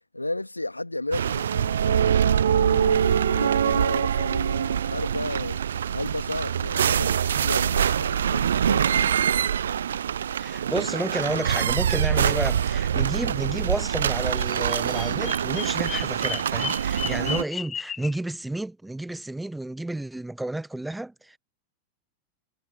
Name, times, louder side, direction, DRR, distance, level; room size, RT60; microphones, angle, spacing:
voice 1, 0.1-9.1, left 2 dB, 85° left, 2.5 m, -33 dB
sound 1, 1.1-17.4, right 9 dB, 65° right, 0.5 m, -24 dB
voice 2, 10.4-21.4, right 2 dB, 5° right, 1.2 m, -31 dB
Bird vocalization bird call bird song, 14.4-18.2, left 7 dB, 20° left, 0.9 m, -35 dB
figure-of-eight pair, 90°, 0 cm